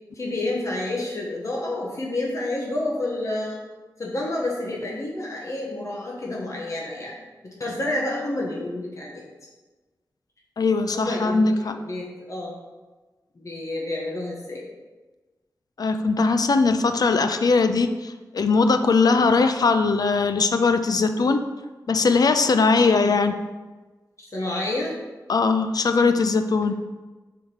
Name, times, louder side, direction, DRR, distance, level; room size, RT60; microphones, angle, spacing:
voice 1, 0.1-3.6 4.0-7.1 7.4-9.2 10.9-12.5 13.3-14.6 19.0-19.4 22.8-23.2 24.3-24.9, left 2 dB, 45° left, -3 dB, 1.2 m, -29 dB
voice 2, 10.6-11.8 15.8-21.4 21.9-23.3 25.3-26.7, left 4 dB, 65° left, 8 dB, 0.5 m, -20 dB
5.0 x 4.6 x 5.6 m, 1.2 s
wide cardioid pair, 95°, 7 cm